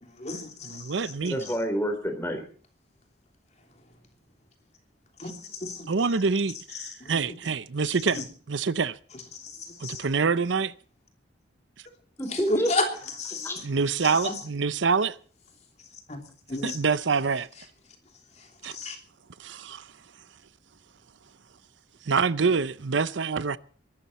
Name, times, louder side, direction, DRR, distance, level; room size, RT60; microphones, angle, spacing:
voice 1, 0.0-1.1 1.4-1.5 5.2-5.9 6.8-7.5 8.1-8.2 9.3-10.0 12.3-12.9 13.2-13.6 14.0-14.4 16.1-16.2 16.5-16.8 18.7-19.0, left 2 dB, 35° left, 3.2 m, -33 dB
voice 2, 0.6-1.4 5.9-8.2 8.5-9.0 9.8-10.7 13.6-15.2 16.6-17.5 18.6-18.8 19.4-19.8 22.1-23.6, right 5 dB, 75° right, 0.7 m, -26 dB
voice 3, 1.2-2.4 12.2-12.7 13.4-13.6, equal, 15° left, 3.6 m, -28 dB
22.5 x 12.5 x 4.3 m
head